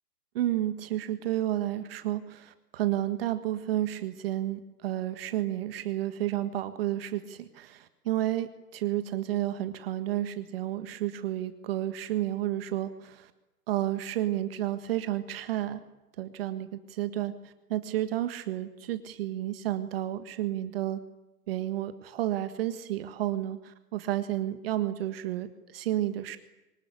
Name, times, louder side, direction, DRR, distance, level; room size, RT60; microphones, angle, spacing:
voice 1, 0.3-13.3 13.7-15.8 16.2-17.3 17.7-21.0 21.5-26.4, right 13 dB, 40° right, 10 dB, 1.6 m, -31 dB
24.5 x 20.0 x 9.9 m, 0.99 s
hypercardioid pair, 150°, 47 cm